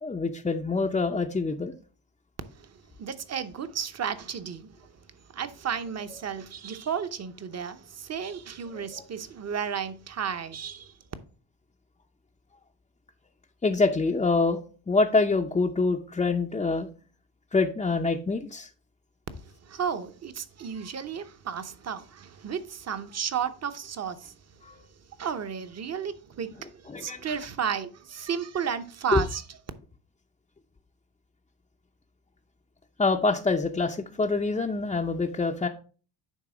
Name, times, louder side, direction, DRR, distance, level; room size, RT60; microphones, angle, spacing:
voice 1, 0.0-1.8 8.7-9.0 13.6-14.6 14.9-16.9 17.5-18.7 24.7-24.8 26.9-27.2 29.1-29.2 33.0-35.7, left 3 dB, 15° left, 0.5 m, -25 dB
voice 2, 3.0-4.9 5.3-10.9 19.7-24.3 25.2-29.4, right 7 dB, 30° right, 0.8 m, -33 dB
9.2 x 3.4 x 4.9 m
cardioid pair, 85°, 49 cm